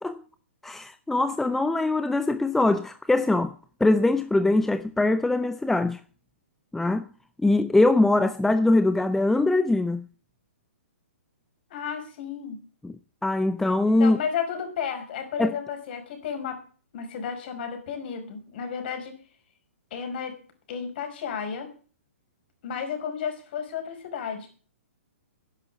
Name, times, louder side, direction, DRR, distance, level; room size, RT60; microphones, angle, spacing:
voice 1, 0.6-3.5 3.8-6.0 6.7-7.0 7.4-10.0 12.8-12.9 13.2-14.2 15.4-15.5, left 2 dB, 5° left, 0.7 m, -22 dB
voice 2, 11.7-12.6 14.0-16.6 16.9-19.2 19.9-20.4 20.7-21.7 22.6-24.5, left 7 dB, 45° left, 5.3 m, -32 dB
11.0 x 11.0 x 8.6 m
figure-of-eight pair, 120°, 7 cm